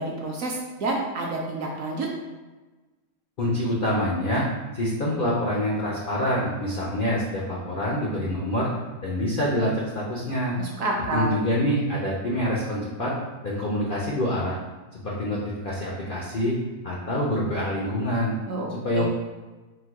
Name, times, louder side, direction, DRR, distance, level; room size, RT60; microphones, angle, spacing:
voice 1, 0.0-2.1 10.6-11.3 18.5-18.7 18.9-19.0, right 2 dB, 65° right, -1 dB, 0.8 m, -28 dB
voice 2, 3.4-4.4 4.7-8.7 9.0-10.6 11.1-13.1 13.4-14.6 14.9-16.6 16.8-18.4 18.7-19.0, left 1 dB, 80° left, -4 dB, 0.4 m, -26 dB
4.4 x 2.2 x 4.6 m, 1.2 s
omnidirectional pair, 1.8 m